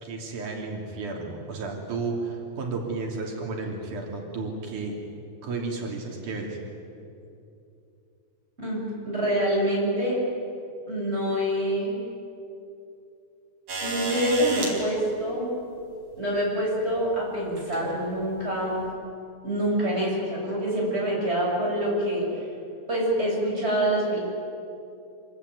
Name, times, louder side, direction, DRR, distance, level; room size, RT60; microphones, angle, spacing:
voice 1, 0.0-5.0 5.4-6.6, right 3 dB, 90° right, 0 dB, 4.5 m, -32 dB
voice 2, 8.6-10.2 10.9-12.0 13.8-15.5 16.2-18.8 19.4-22.2 22.9-24.2, right 1 dB, 20° right, -3 dB, 7.9 m, -26 dB
sound 1, 13.7-14.7 16.1-16.2 17.6-17.8 18.8-18.9, right 2 dB, 50° right, 5.7 m, -31 dB
26.5 x 23.5 x 9.5 m, 2.7 s
omnidirectional pair, 3.4 m